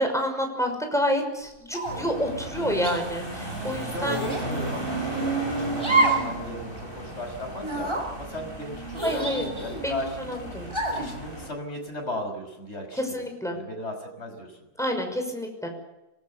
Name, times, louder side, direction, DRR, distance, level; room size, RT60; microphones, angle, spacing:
voice 1, 0.0-4.2 9.0-9.5 9.8-10.0 10.3-10.7 13.1-13.6 14.8-15.7, equal, ahead, 3 dB, 5.7 m, -28 dB
sound 1, 1.7-2.1 2.8-3.0 4.0-4.5 5.8-6.3 6.7-6.8 7.6-8.1 9.0-9.9 10.7-11.1, right 2 dB, 15° right, 5.0 m, -27 dB
sound 2, 1.8-11.5, right 2 dB, 35° right, 7.8 m, -34 dB
voice 2, 3.9-10.2 10.6-13.2 13.5-14.5, left 1 dB, 45° left, 3 dB, 5.9 m, -36 dB
25.5 x 19.0 x 7.1 m, 0.95 s
omnidirectional pair, 1.6 m